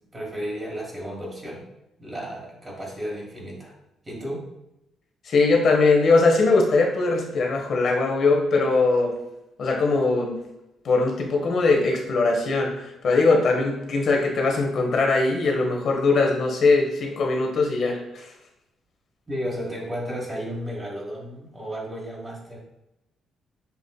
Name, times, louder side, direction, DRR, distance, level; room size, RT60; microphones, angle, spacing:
voice 1, 0.1-1.7 2.0-3.7 4.0-4.4 19.3-22.6, equal, 25° right, -3 dB, 1.3 m, -33 dB
voice 2, 5.2-9.1 9.6-10.4 10.8-18.3, left 3 dB, 60° left, 2 dB, 1.0 m, -21 dB
6.9 x 2.5 x 2.3 m, 0.90 s
cardioid pair, 90°, 0 cm